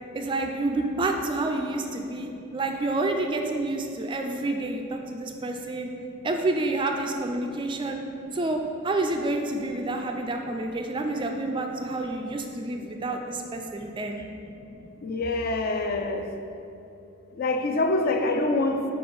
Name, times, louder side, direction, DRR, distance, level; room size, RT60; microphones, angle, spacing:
voice 1, 0.1-5.9 6.2-8.0 8.3-14.3, right 2 dB, 25° right, 3 dB, 0.3 m, -29 dB
voice 2, 15.0-16.3 17.4-18.9, left 2 dB, 45° left, 5 dB, 0.4 m, -25 dB
4.7 x 4.2 x 5.3 m, 2.7 s
head